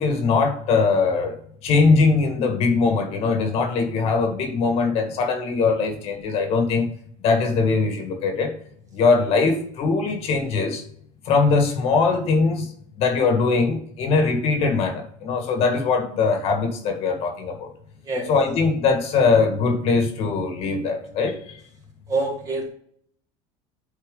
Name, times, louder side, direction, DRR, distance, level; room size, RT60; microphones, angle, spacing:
voice 1, 0.0-1.3 1.6-6.9 7.2-8.5 8.9-10.8 11.2-12.7 13.0-17.7 18.3-21.4, left 4 dB, 50° left, 4 dB, 1.7 m, -21 dB
voice 2, 22.1-22.7, right 2 dB, 25° right, 1 dB, 2.0 m, -25 dB
8.9 x 4.3 x 3.7 m, 0.62 s
cardioid pair, 145°, 13 cm